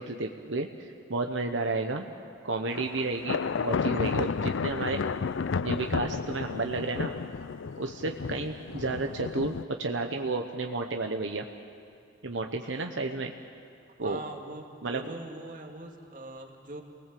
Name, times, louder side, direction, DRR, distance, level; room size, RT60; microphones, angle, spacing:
voice 1, 0.0-2.0 2.4-5.0 5.6-7.1 7.8-9.5 9.8-11.5 12.2-13.3 14.0-14.2 14.8-15.1, right 3 dB, 80° right, 3 dB, 1.1 m, -32 dB
sound 1, 2.7-9.6, left 5 dB, 85° left, 0.5 m, -32 dB
voice 2, 12.6-13.2 14.0-16.8, right 2 dB, 45° right, 2 dB, 2.4 m, -43 dB
28.5 x 19.5 x 7.7 m, 2.5 s
head